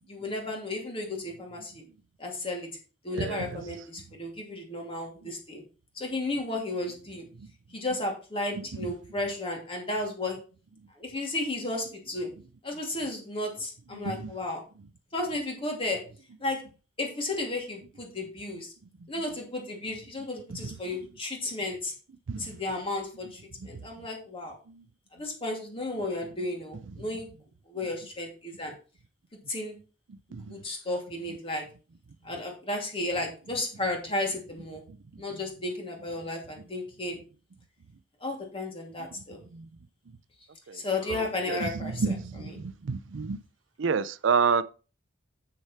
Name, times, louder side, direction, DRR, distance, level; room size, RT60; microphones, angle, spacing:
voice 1, 0.1-1.8 2.2-2.7 3.0-5.6 5.9-7.2 7.7-10.4 11.0-12.3 12.6-14.6 15.1-16.1 16.4-16.6 17.0-18.7 19.1-21.9 22.3-24.6 25.1-27.3 27.7-28.7 29.5-29.8 30.4-31.7 32.2-34.8 35.2-37.2 38.2-39.4 40.7-42.6, left 2 dB, 30° left, 2.7 m, -33 dB
voice 2, 3.1-3.6 7.4-7.5 13.9-14.3 20.5-20.7 22.3-22.5 23.7-23.8 24.7-24.8 30.3-30.6 39.5-39.7 40.7-40.8 41.1-43.4 43.8-44.6, right 5 dB, 90° right, 0.5 m, -29 dB
7.9 x 6.5 x 4.5 m
head